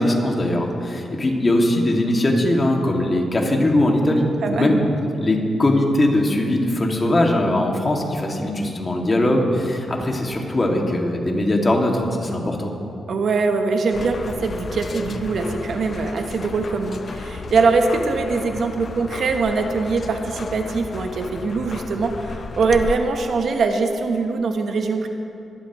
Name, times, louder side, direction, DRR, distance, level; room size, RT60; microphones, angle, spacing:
voice 1, 0.0-4.8 5.2-12.7, left 1 dB, 30° left, 0 dB, 2.1 m, -20 dB
voice 2, 4.4-4.8 13.1-25.1, right 4 dB, 65° right, 5 dB, 1.0 m, -22 dB
sound 1, 13.9-23.0, left 4 dB, 50° left, 0.5 m, -34 dB
21.5 x 11.5 x 3.1 m, 2.7 s
cardioid pair, 75°, 0 cm